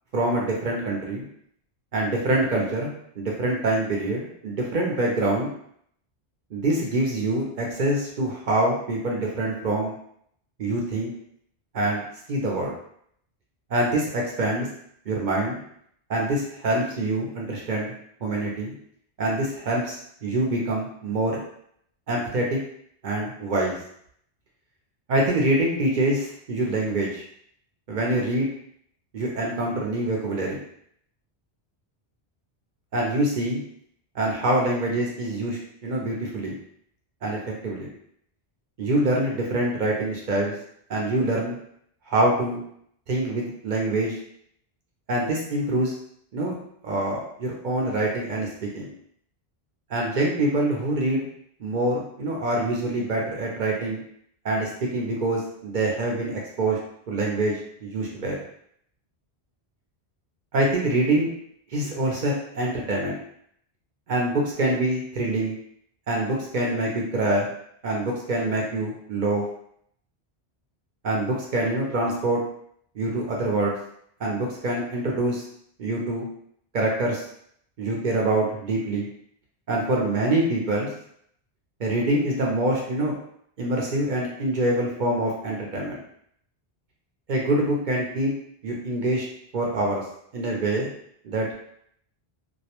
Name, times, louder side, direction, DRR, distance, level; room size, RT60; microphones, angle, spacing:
voice 1, 0.1-1.3 1.9-5.5 6.5-9.9 10.6-11.1 11.7-12.7 13.7-14.7 15.1-15.6 16.1-17.9 18.2-18.7 19.2-21.4 22.1-22.6 23.0-23.7 25.1-27.2 27.9-28.5 29.1-30.6 32.9-33.6 34.1-36.5 37.2-37.4 37.6-37.9 38.8-40.5 40.9-41.6 42.1-42.6 43.1-44.1 45.1-45.9 46.3-46.5 46.8-48.5 48.7-48.9 49.9-51.3 51.6-54.0 54.4-56.8 57.1-57.5 57.8-58.4 60.5-61.3 61.7-63.2 64.1-65.5 66.1-67.5 67.8-69.4 71.0-72.4 73.0-73.8 74.2-75.4 75.8-76.3 76.7-77.2 77.8-79.1 79.7-80.9 81.8-83.1 83.6-86.0 87.3-88.3 88.6-89.2 89.5-90.0 90.3-90.9 91.2-91.6, right 1 dB, 55° right, -2 dB, 0.6 m, -25 dB
2.3 x 2.1 x 2.8 m, 0.67 s
omnidirectional pair, 1.1 m